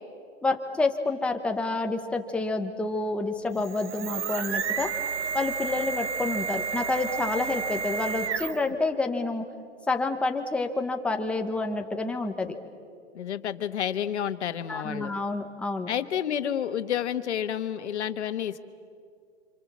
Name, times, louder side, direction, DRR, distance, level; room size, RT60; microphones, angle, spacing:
voice 1, 0.4-4.9 5.3-9.5 9.9-12.5 14.7-15.9, left 3 dB, 5° left, 4 dB, 0.9 m, -28 dB
sound 1, 3.5-8.8, right 6 dB, 75° right, 1.6 m, -31 dB
voice 2, 13.1-15.1 15.9-18.6, left 9 dB, 75° left, 9 dB, 1.5 m, -30 dB
29.5 x 26.5 x 7.4 m, 2.4 s
hypercardioid pair, 165°, 34 cm